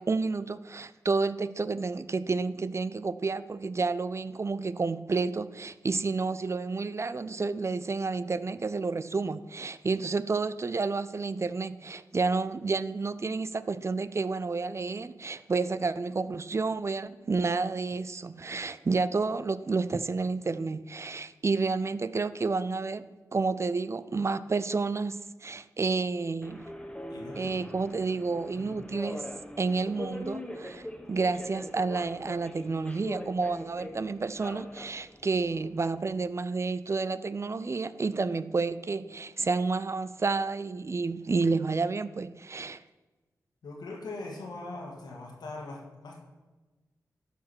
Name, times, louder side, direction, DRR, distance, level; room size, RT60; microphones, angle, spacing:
voice 1, 0.0-23.0 23.3-26.7 27.4-29.2 29.6-42.8, right 4 dB, 40° right, 15 dB, 0.5 m, -30 dB
Subway metro underground, 26.4-36.1, left 1 dB, 10° left, 1.3 m, -42 dB
voice 2, 27.1-27.6 28.6-28.8 43.6-46.2, left 2 dB, 85° left, 0 dB, 2.0 m, -41 dB
12.0 x 4.8 x 6.2 m, 1.2 s
cardioid pair, 50°, 7 cm